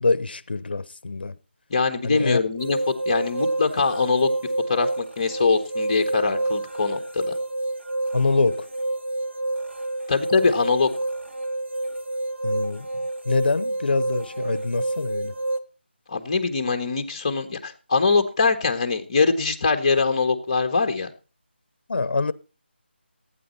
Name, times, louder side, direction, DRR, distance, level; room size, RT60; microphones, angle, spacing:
voice 1, 0.0-1.3 2.0-2.4 8.1-8.6 12.4-12.9 13.3-15.3 21.9-22.3, left 3 dB, 55° left, 0.9 m, -24 dB
voice 2, 1.7-2.8 3.0-4.3 4.7-7.3 10.1-10.9 16.1-21.1, left 4 dB, 30° left, 1.5 m, -22 dB
sound 1, 2.6-15.6, right 2 dB, 75° right, 1.6 m, -29 dB
16.0 x 9.4 x 4.2 m
figure-of-eight pair, 175°, 6 cm